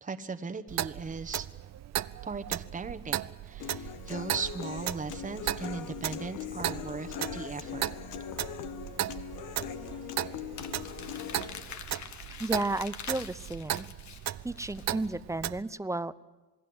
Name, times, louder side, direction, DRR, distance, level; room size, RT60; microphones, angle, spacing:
voice 1, 0.0-1.5 2.2-7.9, right 4 dB, 25° right, 8 dB, 1.2 m, -38 dB
Clock, 0.7-15.6, right 12 dB, 60° right, 0.7 m, -37 dB
Human voice / Acoustic guitar, 3.6-11.6, left 9 dB, 90° left, 1.4 m, -41 dB
Crumpling crinkling, 10.6-15.1, left 8 dB, 65° left, 1.7 m, -45 dB
voice 2, 12.4-13.9 14.4-16.2, right 2 dB, 10° right, 15 dB, 0.8 m, -33 dB
27.5 x 19.5 x 8.0 m, 1.2 s
cardioid pair, 90°, 30 cm